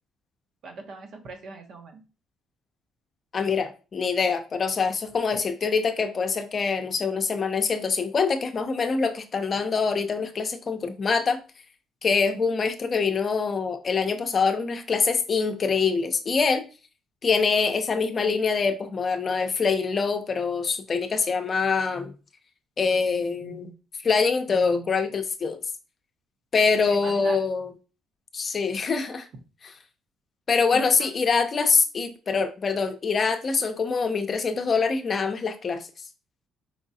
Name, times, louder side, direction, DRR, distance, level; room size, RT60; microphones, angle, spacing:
voice 1, 0.6-2.0 26.9-27.4 30.7-30.8, right 4 dB, 60° right, 1.0 m, -40 dB
voice 2, 3.3-11.4 12.0-16.6 17.2-22.1 22.8-23.7 24.0-25.6 26.5-27.7 28.3-29.3 30.5-35.9, left 5 dB, 40° left, 0.6 m, -24 dB
4.8 x 3.6 x 2.8 m
cardioid pair, 105°, 0 cm